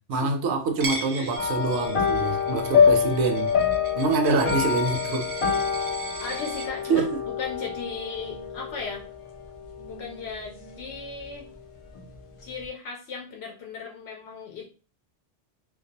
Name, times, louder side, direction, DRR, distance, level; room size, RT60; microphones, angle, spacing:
voice 1, 0.1-3.5 4.0-5.3 6.9-7.1, right 4 dB, 80° right, 6 dB, 0.8 m, -25 dB
Coin (dropping), 0.8-6.7, right 4 dB, 40° right, 0.5 m, -37 dB
sound 1, 1.4-10.9 11.2-11.6 12.0-12.1, left 6 dB, 55° left, 0.3 m, -26 dB
voice 2, 6.2-7.1 7.4-9.0 9.9-11.5 12.4-14.7, left 5 dB, 75° left, 0 dB, 0.8 m, -36 dB
2.3 x 2.2 x 2.7 m, 0.36 s
omnidirectional pair, 1.1 m